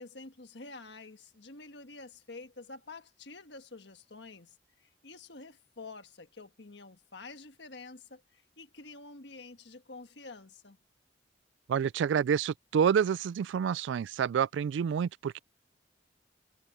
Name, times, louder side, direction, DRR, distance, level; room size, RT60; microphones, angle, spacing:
voice 1, 0.0-10.8, left 3 dB, 65° left, 1.5 m, -48 dB
voice 2, 11.7-15.4, right 7 dB, 75° right, 0.3 m, -28 dB
head